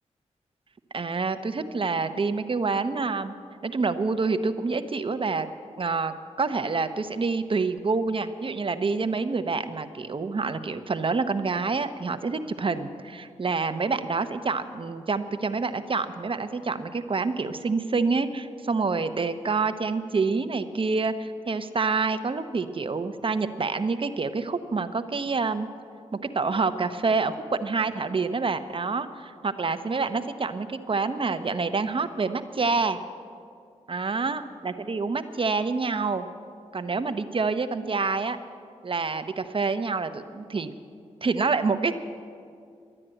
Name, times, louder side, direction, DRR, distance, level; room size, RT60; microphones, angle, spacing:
voice 1, 0.9-3.3 3.6-5.5 5.8-25.7 26.1-33.0 33.9-36.3 36.7-38.4 38.8-40.7 41.2-41.9, right 4 dB, 45° right, 10 dB, 0.8 m, -27 dB
12.0 x 9.8 x 8.9 m, 2.4 s
cardioid pair, 60°, 13 cm